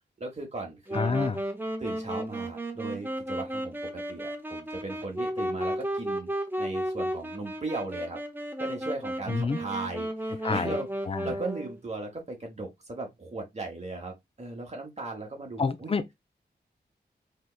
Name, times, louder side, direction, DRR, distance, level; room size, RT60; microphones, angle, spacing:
voice 1, 0.2-1.3 1.8-6.3 6.6-8.2 8.6-15.9, right 2 dB, 40° right, 1.0 m, -37 dB
voice 2, 0.9-1.4 9.3-9.6 10.4-10.7 11.1-11.3 15.6-16.1, left 4 dB, 30° left, 0.4 m, -28 dB
Wind instrument woodwind instrument, 0.9-11.8, right 1 dB, 10° right, 0.7 m, -33 dB
3.4 x 2.9 x 2.3 m
wide cardioid pair, 105°, 18 cm